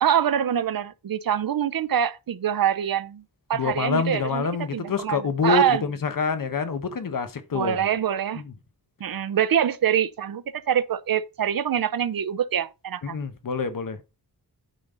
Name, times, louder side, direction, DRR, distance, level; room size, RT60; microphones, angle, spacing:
voice 1, 0.0-3.2 3.5-5.8 7.5-8.4 9.0-13.2, right 9 dB, 60° right, 0.6 m, -25 dB
voice 2, 3.5-7.8 8.3-8.5 13.0-14.0, left 5 dB, 55° left, 1.1 m, -26 dB
9.3 x 5.3 x 3.8 m
wide cardioid pair, 155°, 39 cm